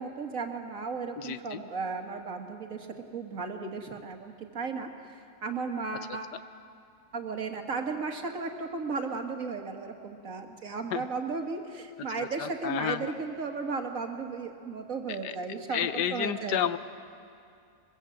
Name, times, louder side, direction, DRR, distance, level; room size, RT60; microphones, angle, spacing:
voice 1, 0.0-2.9 3.1-4.9 5.4-6.4 7.1-16.7, right 4 dB, 55° right, 4 dB, 2.0 m, -35 dB
voice 2, 1.2-1.6 10.9-11.0 12.2-12.3 12.6-13.1 15.2-15.3 15.7-16.8, left 10 dB, 85° left, 12 dB, 1.4 m, -30 dB
22.5 x 22.0 x 7.8 m, 2.4 s
omnidirectional pair, 1.8 m